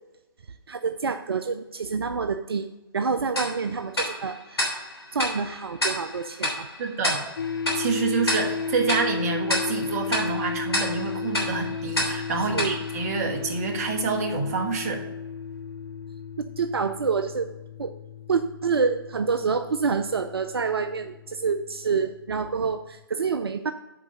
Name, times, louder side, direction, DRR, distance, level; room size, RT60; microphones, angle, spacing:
voice 1, 0.7-2.7 2.9-4.8 5.1-6.7 12.4-12.8 16.4-17.5 17.8-17.9 18.3-23.7, right 5 dB, 75° right, 9 dB, 0.5 m, -27 dB
Tick-tock, 3.4-13.8, left 1 dB, 85° left, 3.2 m, -31 dB
voice 2, 6.8-7.2 7.8-15.0, right 4 dB, 40° right, 4 dB, 1.5 m, -27 dB
sound 1, 7.4-22.6, left 5 dB, 65° left, 0.5 m, -34 dB
7.5 x 4.7 x 6.6 m, 1.0 s
figure-of-eight pair, 130°, 13 cm